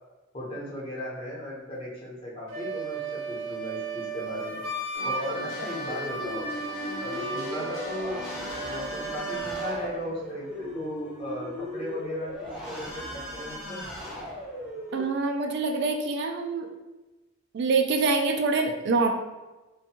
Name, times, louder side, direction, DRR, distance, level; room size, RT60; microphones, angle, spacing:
voice 1, 0.3-4.6 5.0-6.5 7.0-13.8, left 1 dB, 30° left, -7 dB, 0.9 m, -37 dB
Wind instrument woodwind instrument, 2.5-9.9, right 3 dB, 85° right, 0.7 m, -35 dB
sound 1, 4.9-10.7, left 1 dB, 75° left, 0.9 m, -42 dB
sound 2, 5.9-15.0, equal, 5° right, 0.6 m, -38 dB
voice 2, 14.9-16.7 17.5-19.1, right 3 dB, 60° right, 3 dB, 0.3 m, -25 dB
2.6 x 2.2 x 2.8 m, 1.1 s
head